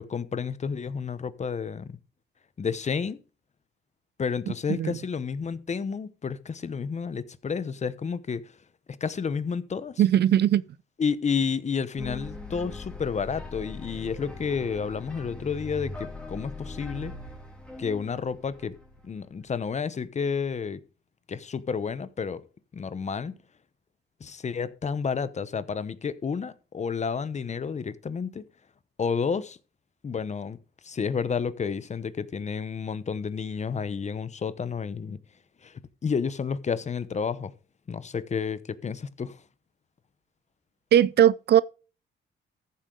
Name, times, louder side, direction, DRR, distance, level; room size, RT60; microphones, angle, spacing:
voice 1, 0.0-2.0 2.6-3.2 4.2-8.5 8.9-10.0 11.0-17.1 17.8-18.8 19.0-20.8 21.3-22.4 22.7-23.4 24.2-28.5 29.0-29.6 30.0-35.2 35.6-37.5 37.9-39.4, left 6 dB, 35° left, 0.9 m, -31 dB
voice 2, 10.0-10.6 40.9-41.6, right 11 dB, 55° right, 0.5 m, -19 dB
sound 1, 12.0-19.3, left 2 dB, 5° left, 2.8 m, -40 dB
14.0 x 7.4 x 3.9 m
cardioid pair, 90°, 20 cm